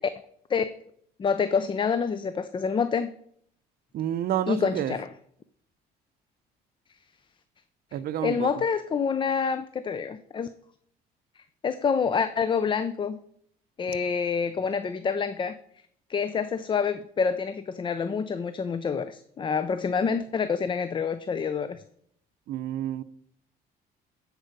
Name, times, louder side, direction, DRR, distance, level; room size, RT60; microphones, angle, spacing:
voice 1, 1.2-3.1 4.5-5.1 8.2-10.5 11.6-13.2 13.8-15.6 16.1-21.8, left 6 dB, 30° left, 0.5 m, -27 dB
voice 2, 3.9-4.9 7.9-8.5 22.5-23.0, right 11 dB, 65° right, 0.6 m, -29 dB
10.0 x 4.8 x 6.6 m
cardioid pair, 110°, 17 cm